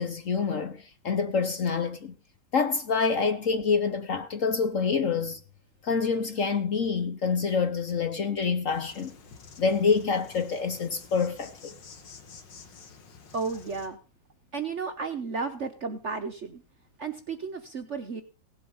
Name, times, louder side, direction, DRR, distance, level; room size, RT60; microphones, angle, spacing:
voice 1, 0.0-2.2 2.5-5.4 5.8-9.1 9.6-11.7, left 5 dB, 50° left, 1.1 m, -27 dB
Insect, 8.7-13.9, left 5 dB, 70° left, 2.3 m, -50 dB
voice 2, 13.3-14.0 14.5-16.6 17.0-18.2, right 4 dB, 50° right, 1.0 m, -33 dB
17.5 x 7.8 x 5.4 m
omnidirectional pair, 2.1 m